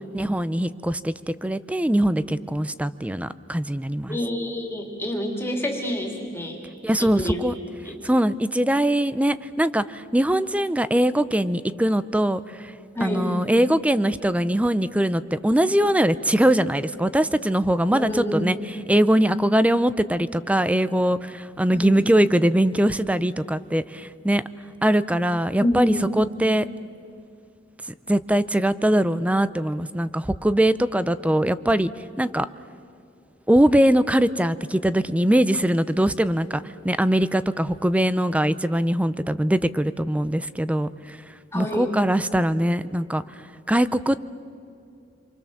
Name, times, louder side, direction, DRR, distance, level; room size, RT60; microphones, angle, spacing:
voice 1, 0.1-4.2 6.8-7.5 8.0-12.7 13.0-24.4 24.8-26.7 28.1-31.9 32.2-32.5 33.5-41.2 41.5-43.2 43.7-44.2, right 1 dB, 5° right, 15 dB, 0.5 m, -22 dB
voice 2, 4.1-6.6 7.0-7.4 7.8-7.9 12.9-13.3 17.9-18.4 21.7-22.0 25.6-26.1 41.5-41.9, equal, 15° left, 1 dB, 2.8 m, -27 dB
28.0 x 24.0 x 7.2 m, 2.6 s
head